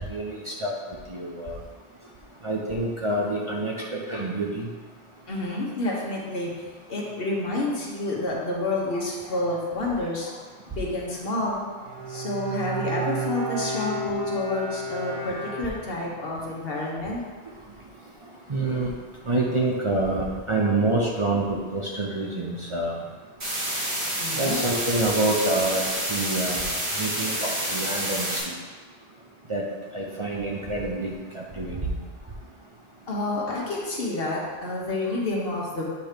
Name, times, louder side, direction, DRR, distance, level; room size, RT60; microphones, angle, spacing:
voice 1, 0.1-0.7 1.1-1.5 2.4-4.7 18.5-18.9 19.3-23.0 24.4-25.8 26.1-26.6 27.0-28.5 29.5-29.6 29.9-32.0, right 2 dB, 35° right, -3 dB, 0.7 m, -27 dB
voice 2, 5.3-10.4 10.7-17.2 24.2-24.9 33.1-35.8, left 2 dB, 60° left, -3 dB, 1.4 m, -29 dB
Bowed string instrument, 11.8-16.2, right 2 dB, 65° right, 2.4 m, -31 dB
sound 1, 23.4-28.4, right 1 dB, 85° right, 2.6 m, -28 dB
8.3 x 3.1 x 5.1 m, 1.4 s
omnidirectional pair, 1.1 m